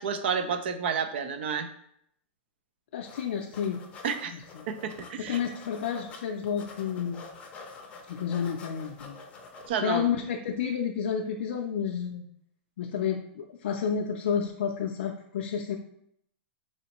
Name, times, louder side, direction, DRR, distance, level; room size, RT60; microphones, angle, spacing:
voice 1, 0.0-1.7 4.0-4.3 4.7-5.4 9.7-10.0, right 6 dB, 70° right, 9 dB, 0.5 m, -30 dB
voice 2, 2.9-3.8 4.3-4.7 5.2-7.2 8.1-9.2 9.8-12.2 12.8-15.8, left 7 dB, 75° left, 1 dB, 0.4 m, -30 dB
sound 1, 3.0-3.2 3.5-6.2 6.4-9.7, left 4 dB, 20° left, 0.6 m, -47 dB
4.2 x 3.0 x 2.9 m, 0.72 s
supercardioid pair, 150°, 6 cm